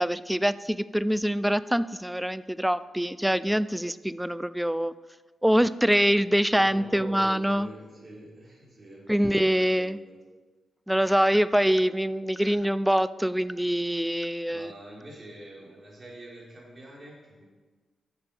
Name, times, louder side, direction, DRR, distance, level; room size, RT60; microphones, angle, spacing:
voice 1, 0.0-4.9 5.4-7.7 9.1-10.0 10.9-14.7, equal, 5° right, 16 dB, 0.3 m, -24 dB
voice 2, 6.5-10.2 14.5-17.5, right 1 dB, 35° right, -3 dB, 3.4 m, -44 dB
9.7 x 7.0 x 5.5 m, 1.3 s
cardioid pair, 95°, 0 cm